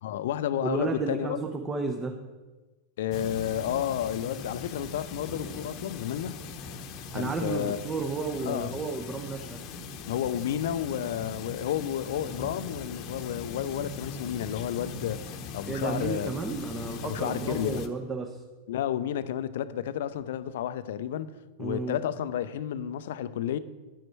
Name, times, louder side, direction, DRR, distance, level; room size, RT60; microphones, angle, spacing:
voice 1, 0.0-1.4 3.0-6.4 7.1-7.8 8.4-8.8 10.1-15.2 15.5-16.3 17.0-17.8 18.7-21.3 21.6-23.6, left 10 dB, 55° left, 0.6 m, -31 dB
voice 2, 0.6-2.2 7.1-9.6 15.7-18.4 21.6-22.0, right 4 dB, 15° right, 1.0 m, -32 dB
sound 1, 3.1-17.9, left 4 dB, 40° left, 1.0 m, -40 dB
12.0 x 9.0 x 4.6 m
figure-of-eight pair, 90°, 0 cm